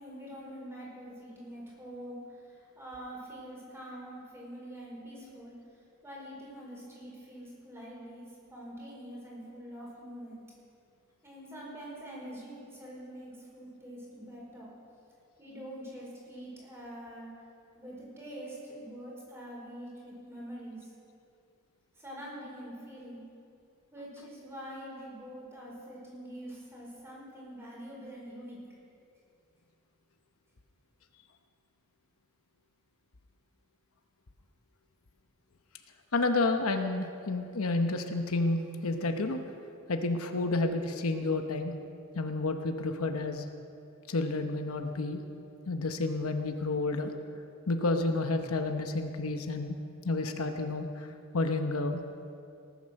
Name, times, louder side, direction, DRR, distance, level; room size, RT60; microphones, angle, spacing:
voice 1, 0.0-10.4 11.2-14.7 15.4-17.3 17.7-20.9 21.9-23.2 23.9-28.6, equal, 10° right, -4 dB, 4.4 m, -45 dB
voice 2, 36.1-39.4 39.9-41.8 42.1-43.5 44.1-45.2 45.7-47.1 47.7-49.8 50.0-52.0, left 2 dB, 75° left, 6 dB, 0.9 m, -30 dB
18.5 x 9.3 x 6.5 m, 2.5 s
head